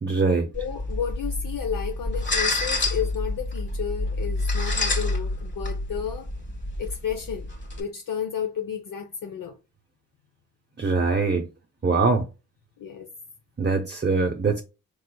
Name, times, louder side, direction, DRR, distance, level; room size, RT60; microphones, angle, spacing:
voice 1, 0.0-0.5 10.8-11.5 11.8-12.3 13.6-14.6, right 4 dB, 30° right, 0.7 m, -22 dB
voice 2, 0.5-6.3 6.8-7.5 7.8-9.5 12.8-13.1, left 8 dB, 65° left, 0.7 m, -32 dB
sound 1, 0.5-7.8, left 2 dB, 30° left, 1.3 m, -28 dB
4.8 x 3.1 x 2.2 m
cardioid pair, 45°, 36 cm